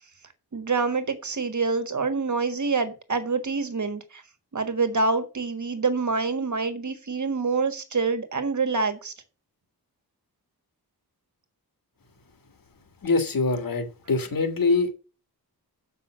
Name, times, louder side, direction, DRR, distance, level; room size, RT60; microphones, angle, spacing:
voice 1, 0.5-4.2 4.5-9.1, right 4 dB, 45° right, 1.5 m, -26 dB
voice 2, 13.0-14.9, left 3 dB, 55° left, 1.8 m, -24 dB
7.1 x 5.6 x 7.3 m
wide cardioid pair, 130°, 39 cm